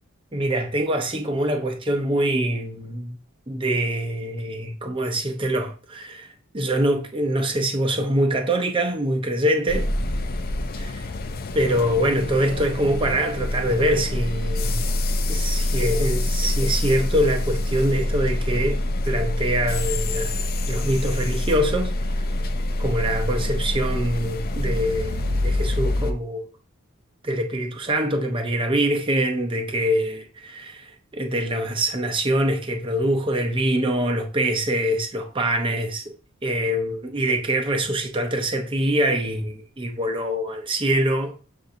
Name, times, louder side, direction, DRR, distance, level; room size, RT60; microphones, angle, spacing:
voice 1, 0.3-3.2 3.5-9.9 10.8-11.1 11.5-14.9 15.3-21.9 22.8-26.5 27.2-36.0 36.4-41.4, right 1 dB, 25° right, 0.6 m, -24 dB
sound 1, 9.7-26.1, left 1 dB, 45° left, 0.4 m, -25 dB
Piano, 11.7-18.5, left 8 dB, 50° right, 0.9 m, -49 dB
6.9 x 2.6 x 2.6 m
head